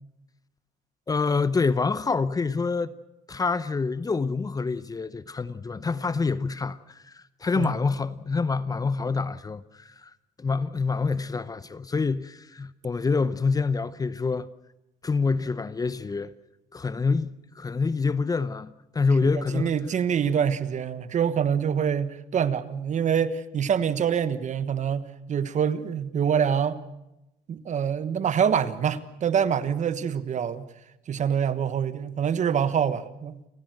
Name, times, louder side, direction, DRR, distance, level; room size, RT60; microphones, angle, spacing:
voice 1, 1.1-2.9 3.3-10.1 10.4-14.5 15.0-16.3 16.7-19.7, left 4 dB, 20° left, 0.7 m, -26 dB
voice 2, 19.2-26.8 27.5-30.7 31.1-33.5, right 8 dB, 45° right, 1.2 m, -25 dB
29.5 x 15.0 x 7.7 m
cardioid pair, 110°, 17 cm